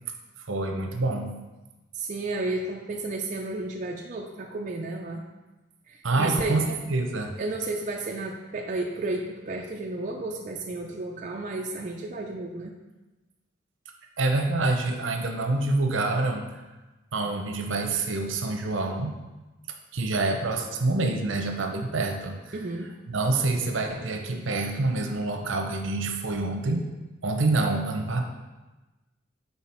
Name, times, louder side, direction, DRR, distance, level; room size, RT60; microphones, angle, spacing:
voice 1, 0.5-1.3 6.0-7.4 14.2-16.5 17.1-19.1 19.9-22.6 23.1-26.9 27.2-28.2, right 2 dB, 75° right, 4 dB, 0.7 m, -26 dB
voice 2, 1.9-5.2 5.9-6.6 7.4-12.7 22.5-22.9, right 2 dB, 40° right, 0 dB, 0.4 m, -32 dB
5.7 x 4.0 x 4.3 m, 1.1 s
head